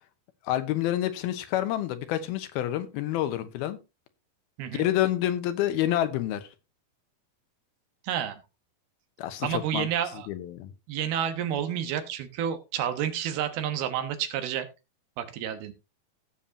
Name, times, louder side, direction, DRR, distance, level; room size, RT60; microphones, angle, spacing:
voice 1, 0.4-3.8 4.7-6.5 9.2-9.9 10.3-10.7, left 13 dB, 85° left, 2.8 m, -28 dB
voice 2, 8.0-8.4 9.4-10.3 10.9-14.7 15.2-15.7, right 9 dB, 85° right, 3.2 m, -30 dB
16.5 x 7.1 x 2.8 m
omnidirectional pair, 4.3 m